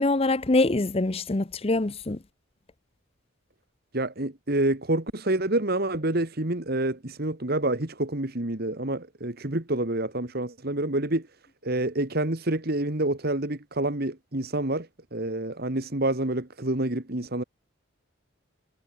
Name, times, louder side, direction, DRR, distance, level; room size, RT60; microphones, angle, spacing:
voice 1, 0.0-2.2, left 2 dB, 30° left, 0.7 m, -24 dB
voice 2, 3.9-11.3 11.6-17.4, right 1 dB, 50° right, 2.0 m, -28 dB
head